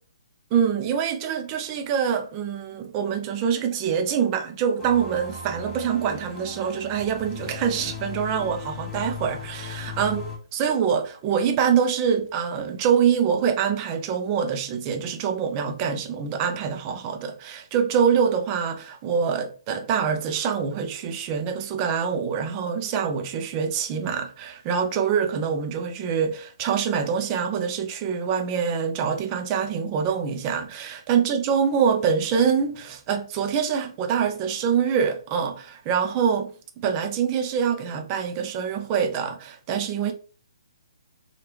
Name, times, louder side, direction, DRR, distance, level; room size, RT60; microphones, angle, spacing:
voice 1, 0.5-10.3 10.5-40.1, right 7 dB, 30° right, 0.6 m, -25 dB
sound 1, 4.8-10.4, left 4 dB, 15° left, 1.1 m, -37 dB
3.2 x 2.4 x 3.0 m
hypercardioid pair, 140°, 3 cm